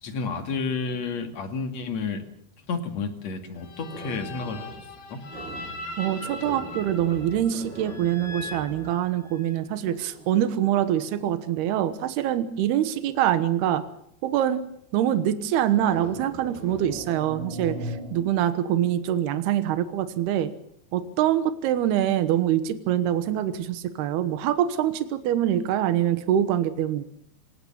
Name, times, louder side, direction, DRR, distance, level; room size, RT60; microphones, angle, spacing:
voice 1, 0.0-2.2 2.7-5.2, left 4 dB, 50° left, 6 dB, 3.2 m, -31 dB
sound 1, 3.6-9.6, left 2 dB, 75° left, 5.1 m, -40 dB
sound 2, 3.9-5.0 5.3-12.2 13.1-13.4 15.7-18.2, right 1 dB, 30° right, 6.5 m, -40 dB
voice 2, 6.0-13.8 14.2-14.6 14.9-20.5 20.9-27.0, right 11 dB, 80° right, 11 dB, 3.2 m, -24 dB
26.0 x 18.5 x 7.2 m, 0.71 s
omnidirectional pair, 4.6 m